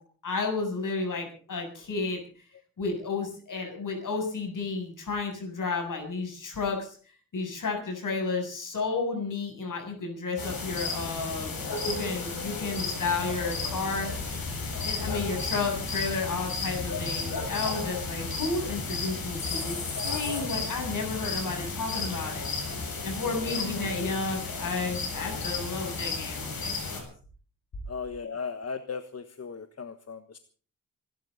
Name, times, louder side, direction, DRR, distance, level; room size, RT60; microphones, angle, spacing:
voice 1, 0.2-2.2 2.8-7.0 7.3-11.5 11.9-14.1 14.8-22.4 23.0-27.1, left 4 dB, 65° left, 3 dB, 7.7 m, -32 dB
sound 1, 10.4-27.0, left 4 dB, 80° left, 7.0 m, -33 dB
voice 2, 27.9-30.4, left 5 dB, 45° left, 9 dB, 1.4 m, -37 dB
26.0 x 13.0 x 4.1 m, 0.42 s
wide cardioid pair, 105°, 35 cm